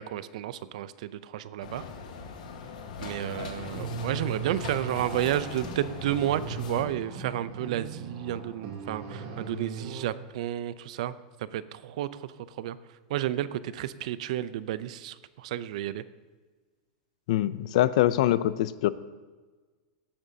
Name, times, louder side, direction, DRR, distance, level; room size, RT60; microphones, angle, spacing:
voice 1, 0.0-1.8 3.0-11.1 11.5-12.3 12.6-12.8 13.1-16.0, right 12 dB, 65° right, 15 dB, 0.5 m, -31 dB
sound 1, 1.6-6.8, left 5 dB, 85° left, 1.4 m, -40 dB
sound 2, 3.7-10.0, right 4 dB, 45° right, 2.7 m, -38 dB
voice 2, 17.3-18.9, left 13 dB, 60° left, 16 dB, 0.4 m, -24 dB
16.5 x 8.7 x 2.8 m, 1.3 s
supercardioid pair, 160°, 4 cm